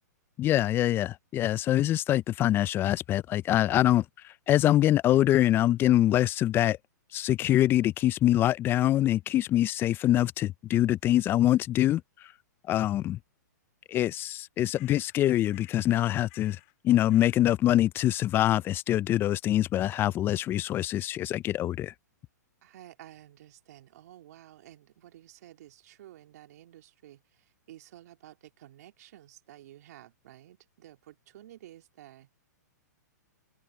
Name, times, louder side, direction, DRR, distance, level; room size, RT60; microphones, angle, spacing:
voice 1, 0.4-6.8 7.1-12.0 12.7-13.2 13.9-16.6 16.8-21.9, left 13 dB, 20° left, 0.4 m, -24 dB
sound 1, 14.7-15.2 15.5-16.0 16.3-16.7 17.1-17.5, left 29 dB, 45° left, 2.3 m, -56 dB
voice 2, 22.6-32.3, right 13 dB, 60° right, 2.6 m, -52 dB
hypercardioid pair, 125°, 10 cm